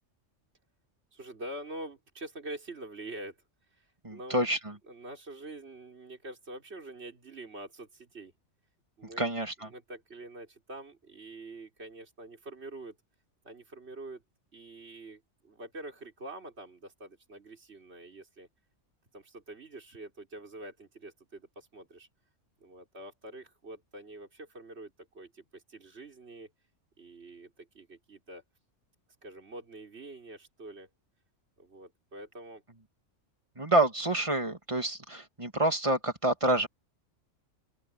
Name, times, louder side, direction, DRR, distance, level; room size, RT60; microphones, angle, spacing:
voice 1, 1.1-3.4 3.7-4.4 4.9-8.3 9.0-9.3 9.6-13.0 13.4-14.2 14.5-18.5 19.1-22.1 22.6-26.5 27.0-28.4 29.2-30.9 31.6-32.6, right 2 dB, 60° right, 4.3 m, -45 dB
voice 2, 4.0-4.7 9.2-9.7 33.6-36.7, right 1 dB, 25° right, 2.6 m, -28 dB
open air
omnidirectional pair, 1.3 m